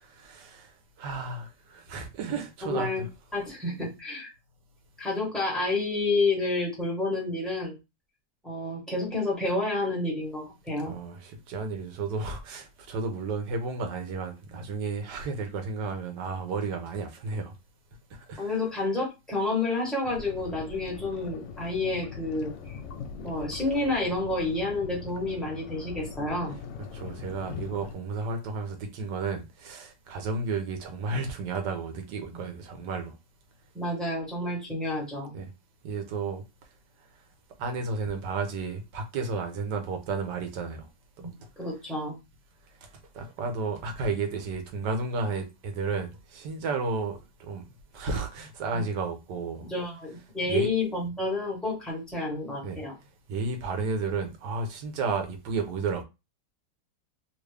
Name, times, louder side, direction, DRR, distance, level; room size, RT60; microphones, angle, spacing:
voice 1, 0.2-3.1 10.9-17.5 18.1-18.5 26.9-33.1 35.3-35.5 35.8-36.4 37.6-40.9 42.8-42.9 43.1-47.6 47.9-49.7 50.5-50.7 52.6-52.8 53.3-56.0, right 4 dB, 75° right, 1.4 m, -32 dB
voice 2, 2.6-3.1 3.3-4.3 5.0-7.8 8.4-11.0 18.4-22.5 23.2-26.5 32.3-32.4 33.7-35.3 41.2-42.1 48.7-48.8 49.7-52.9, left 2 dB, ahead, 1.4 m, -29 dB
sound 1, 20.0-27.9, left 6 dB, 80° left, 1.2 m, -41 dB
3.1 x 2.6 x 3.3 m
omnidirectional pair, 1.9 m